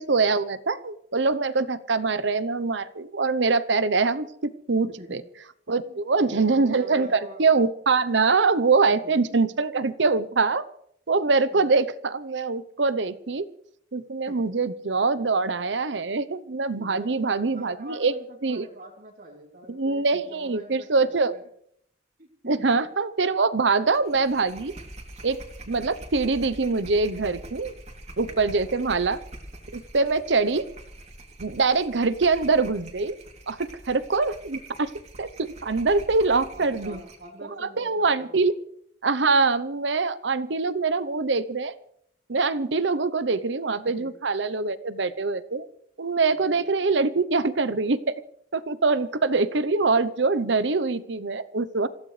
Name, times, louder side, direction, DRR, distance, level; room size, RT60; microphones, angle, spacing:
voice 1, 0.0-5.2 5.7-10.7 11.1-13.5 13.9-18.1 18.4-18.7 19.7-21.3 22.5-24.7 25.2-25.4 25.7-27.7 28.2-29.2 29.7-30.7 31.4-33.2 33.5-34.9 35.2-37.0 37.6-38.5 39.0-41.7 42.3-45.7 46.0-48.2 48.5-51.9, right 4 dB, 75° right, 14 dB, 0.9 m, -24 dB
voice 2, 5.8-7.4 8.9-9.4 11.5-11.6 14.3-14.4 16.7-21.4 22.2-22.5 28.3-28.7 36.5-38.5 44.0-44.1 46.2-46.6 48.8-49.3, right 1 dB, 55° right, -5 dB, 3.1 m, -45 dB
sound 1, 23.9-37.3, right 1 dB, 35° right, 3.0 m, -44 dB
27.0 x 16.0 x 3.3 m, 0.69 s
head